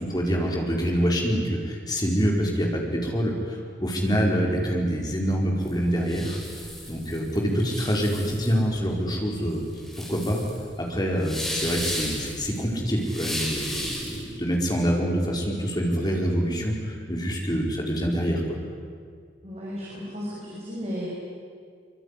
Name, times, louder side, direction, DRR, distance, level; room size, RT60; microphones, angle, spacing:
voice 1, 0.0-6.4 6.9-9.6 10.1-10.4 10.8-18.4, equal, 20° left, -1 dB, 4.7 m, -26 dB
sound 1, 5.6-14.3, equal, ahead, 6.7 m, -35 dB
voice 2, 19.4-21.1, equal, 35° right, -5 dB, 6.5 m, -34 dB
25.0 x 24.5 x 9.9 m, 2.1 s
head